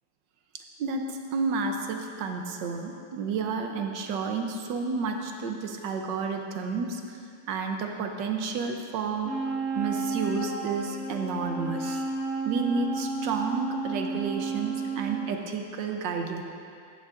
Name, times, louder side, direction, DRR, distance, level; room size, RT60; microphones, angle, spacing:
voice 1, 0.5-9.4 9.8-12.0 12.4-16.4, right 4 dB, 75° right, 4 dB, 1.2 m, -31 dB
Wind instrument woodwind instrument, 9.2-15.4, right 3 dB, ahead, 1.8 m, -32 dB
13.0 x 9.1 x 2.5 m, 2.4 s
omnidirectional pair, 2.2 m